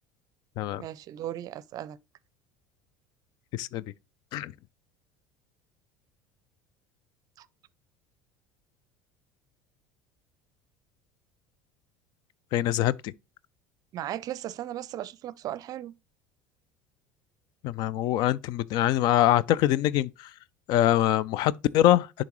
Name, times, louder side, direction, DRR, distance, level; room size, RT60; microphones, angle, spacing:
voice 1, 0.8-2.0 7.4-7.5 13.9-15.9, right 12 dB, 50° right, 0.5 m, -36 dB
voice 2, 3.5-3.8 4.3-4.5 12.5-13.1 17.6-20.3 20.7-22.2, left 13 dB, 55° left, 0.3 m, -24 dB
10.5 x 3.8 x 3.0 m
hypercardioid pair, 70°, 8 cm